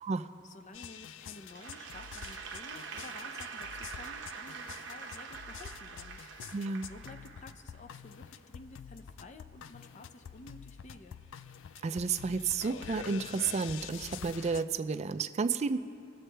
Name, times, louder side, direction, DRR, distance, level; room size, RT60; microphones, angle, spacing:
voice 1, 0.4-6.2 6.8-11.2, left 2 dB, 40° left, 8 dB, 0.6 m, -52 dB
sound 1, 0.7-14.6, left 8 dB, 85° left, 0.4 m, -47 dB
Applause / Crowd, 1.5-7.9, right 5 dB, 80° right, 0.9 m, -44 dB
voice 2, 6.5-6.9 11.8-15.8, right 5 dB, 35° right, 11 dB, 0.4 m, -32 dB
22.0 x 7.4 x 3.4 m, 2.6 s
head